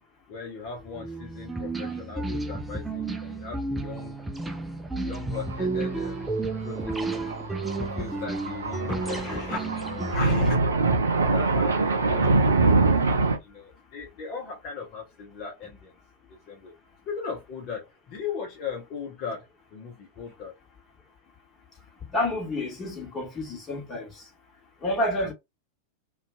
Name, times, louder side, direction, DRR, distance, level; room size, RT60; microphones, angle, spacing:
voice 1, 0.3-4.2 5.0-7.2 7.8-10.6 10.9-15.9 16.3-16.7 17.1-20.5 25.2-25.3, left 5 dB, 40° left, 0.8 m, -38 dB
sound 1, 0.9-10.5, right 3 dB, 10° right, 0.5 m, -32 dB
Thunder, 5.3-5.8 6.0-6.1 7.1-13.4, right 3 dB, 70° right, 0.5 m, -23 dB
voice 2, 22.1-24.1 24.8-25.3, left 1 dB, 20° left, 1.2 m, -29 dB
2.6 x 2.3 x 2.5 m
figure-of-eight pair, 90°, 0 cm